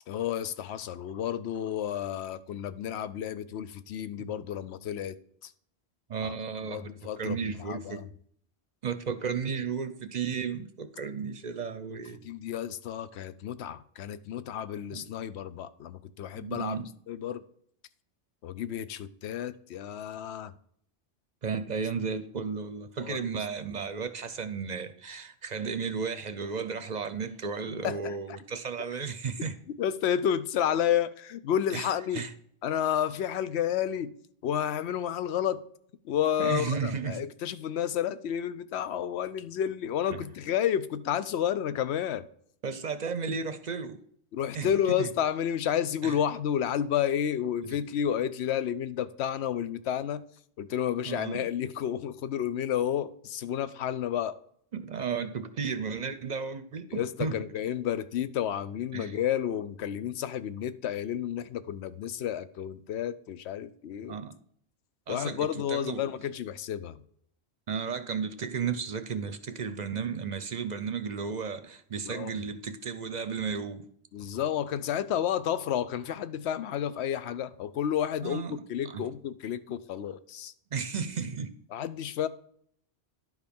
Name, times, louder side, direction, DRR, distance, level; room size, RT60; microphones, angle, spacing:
voice 1, 0.1-5.5 6.2-6.3 6.7-8.1 11.9-16.8 17.1-17.4 18.4-20.5 23.0-23.3 27.8-28.1 29.7-32.2 32.6-34.1 34.4-35.6 36.0-42.3 44.3-50.2 50.6-54.3 56.9-64.2 65.1-67.0 72.0-72.4 74.1-80.5 81.7-82.3, left 9 dB, 85° left, 0.9 m, -31 dB
voice 2, 6.1-6.9 7.2-8.0 8.8-12.2 14.9-15.1 16.3-16.9 21.4-29.6 31.7-32.3 36.4-37.3 40.1-40.3 42.6-44.0 44.5-44.7 45.0-45.1 46.0-46.1 47.6-47.8 51.1-51.5 54.7-57.4 58.9-59.2 64.1-64.3 65.1-66.0 67.7-73.9 78.2-78.5 78.9-79.1 80.7-81.5, right 6 dB, 50° right, 0.6 m, -34 dB
11.0 x 4.9 x 5.2 m
omnidirectional pair, 1.1 m